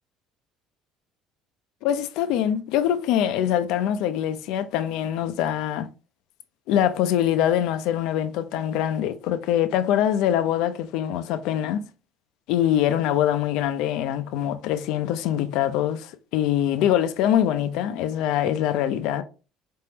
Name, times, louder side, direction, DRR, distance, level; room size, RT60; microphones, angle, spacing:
voice 1, 1.8-5.9 6.7-11.9 12.5-19.2, left 10 dB, 75° left, 0.5 m, -24 dB
4.3 x 3.6 x 2.8 m
cardioid pair, 120°, 0 cm